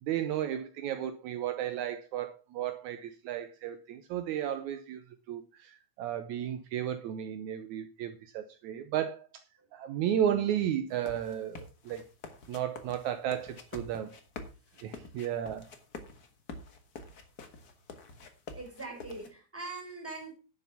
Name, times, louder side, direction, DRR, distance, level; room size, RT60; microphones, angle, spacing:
voice 1, 0.0-9.3 9.7-12.0 12.5-14.2 14.8-15.7, right 10 dB, 75° right, 2.1 m, -34 dB
voice 2, 9.6-10.0 14.7-15.1 18.5-20.3, right 3 dB, 5° right, 4.8 m, -43 dB
sound 1, 10.9-19.3, left 3 dB, 45° left, 1.4 m, -47 dB
11.0 x 7.3 x 5.7 m
omnidirectional pair, 3.6 m